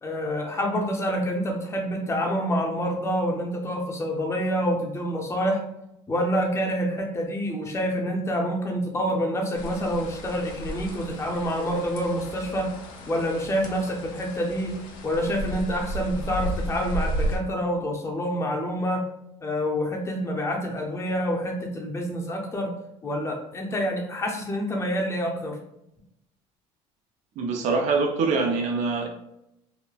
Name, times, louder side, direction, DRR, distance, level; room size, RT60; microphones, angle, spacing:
voice 1, 0.0-5.6 6.1-12.7 13.1-14.8 15.0-19.0 19.4-22.7 23.0-25.6, equal, 20° left, 0 dB, 0.6 m, -27 dB
sound 1, 9.5-17.4, right 1 dB, 85° left, 0.6 m, -33 dB
voice 2, 27.4-29.1, right 4 dB, 60° right, 3 dB, 0.5 m, -24 dB
2.9 x 2.1 x 2.3 m, 0.82 s
cardioid pair, 110°, 14 cm